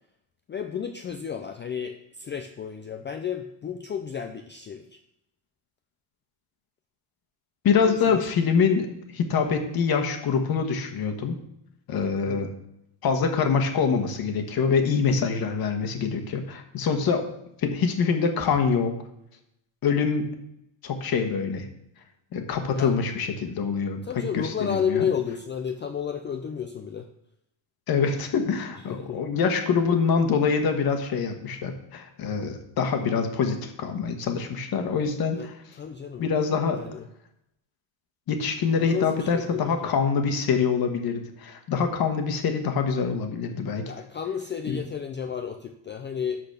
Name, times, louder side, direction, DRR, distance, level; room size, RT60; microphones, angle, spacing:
voice 1, 0.5-5.0 7.8-8.4 12.3-12.5 22.8-23.0 24.0-27.1 28.9-29.2 35.3-36.3 36.7-37.1 38.6-39.9 43.9-46.4, left 7 dB, 25° left, 6 dB, 0.3 m, -32 dB
voice 2, 7.6-8.9 9.1-11.4 11.9-12.5 13.0-17.3 17.6-18.9 19.8-20.3 20.8-21.6 22.3-24.0 24.6-25.0 27.9-35.5 36.2-36.8 38.3-43.8 44.7-44.8, left 5 dB, 45° left, 5 dB, 1.4 m, -25 dB
12.0 x 4.2 x 6.7 m, 0.78 s
cardioid pair, 165°, 48 cm